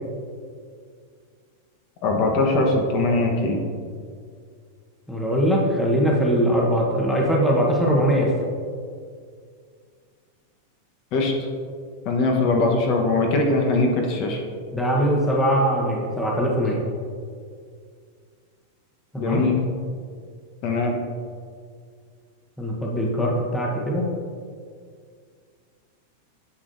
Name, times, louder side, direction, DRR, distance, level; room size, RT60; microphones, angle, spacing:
voice 1, 2.0-3.6 11.1-11.3 12.1-14.4 19.2-19.6 20.6-21.0, left 2 dB, 45° left, 1 dB, 1.1 m, -21 dB
voice 2, 5.1-8.3 14.7-16.8 19.1-19.4 22.6-24.1, equal, 5° left, -3 dB, 1.1 m, -21 dB
9.9 x 6.1 x 2.7 m, 2.1 s
supercardioid pair, 150°, 0 cm